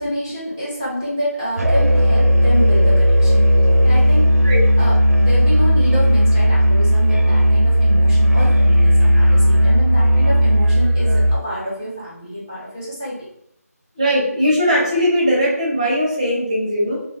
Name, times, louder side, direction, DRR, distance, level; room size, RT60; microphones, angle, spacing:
voice 1, 0.0-3.5 3.8-4.3 4.8-13.3, equal, 15° left, -10 dB, 0.7 m, -27 dB
Musical instrument, 1.6-11.4, equal, 70° right, 0.5 m, -14 dB
voice 2, 14.0-17.0, equal, 25° right, -4 dB, 0.6 m, -19 dB
2.3 x 2.1 x 3.5 m, 0.75 s
figure-of-eight pair, 160°, 9 cm